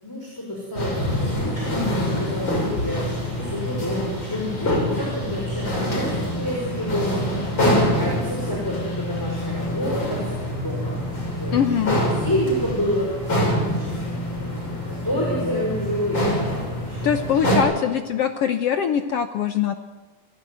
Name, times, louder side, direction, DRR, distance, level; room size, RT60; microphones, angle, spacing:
voice 1, 0.0-11.0 11.3-16.5 16.9-17.7, equal, 5° left, -2 dB, 5.4 m, -29 dB
sound 1, 0.8-17.6, equal, 30° left, 6.6 m, -26 dB
voice 2, 11.5-12.0 17.0-19.7, left 8 dB, 80° left, 9 dB, 1.3 m, -22 dB
28.0 x 16.5 x 9.3 m, 1.3 s
omnidirectional pair, 4.1 m